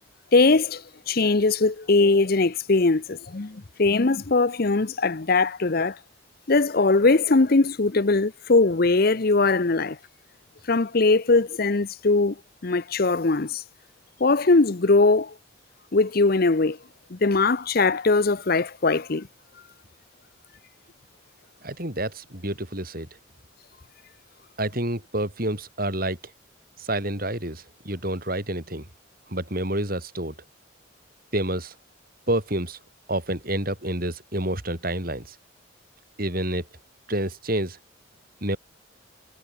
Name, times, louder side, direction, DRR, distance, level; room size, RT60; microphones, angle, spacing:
voice 1, 0.3-6.0 6.5-10.0 10.7-12.3 12.6-13.6 14.2-15.3 15.9-16.8 17.1-19.3, left 3 dB, 50° left, 0.7 m, -21 dB
voice 2, 21.6-23.1 24.6-26.2 26.8-28.9 29.3-30.3 31.3-31.7 32.3-32.8 33.1-35.4 36.2-36.6 37.1-37.8 38.4-38.6, right 1 dB, 45° right, 7.5 m, -28 dB
head